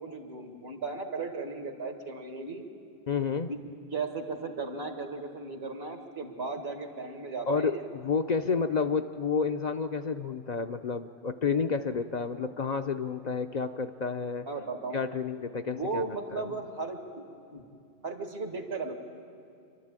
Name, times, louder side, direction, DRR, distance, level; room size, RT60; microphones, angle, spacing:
voice 1, 0.0-2.6 3.5-3.6 3.9-7.9 14.5-15.0 15.7-17.6 18.0-19.0, right 3 dB, 70° right, 4 dB, 2.1 m, -36 dB
voice 2, 3.1-3.5 7.5-14.5 14.9-16.0 16.3-16.5, left 5 dB, 50° left, 7 dB, 0.6 m, -30 dB
28.0 x 12.0 x 8.9 m, 2.5 s
omnidirectional pair, 1.1 m